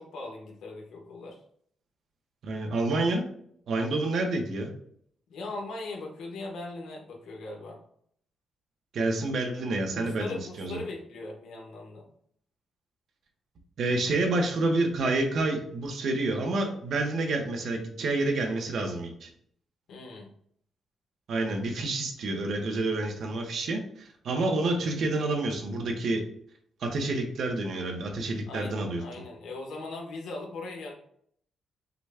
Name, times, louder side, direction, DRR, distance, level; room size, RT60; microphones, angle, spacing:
voice 1, 0.0-1.4 5.3-7.8 9.9-12.1 19.9-20.3 28.5-30.9, left 2 dB, 85° left, 0 dB, 1.2 m, -39 dB
voice 2, 2.4-3.3 3.7-4.7 8.9-10.8 13.8-19.3 21.3-26.2 26.8-29.0, right 2 dB, 65° right, 2 dB, 1.0 m, -28 dB
5.9 x 2.3 x 3.5 m, 0.65 s
cardioid pair, 115°, 0 cm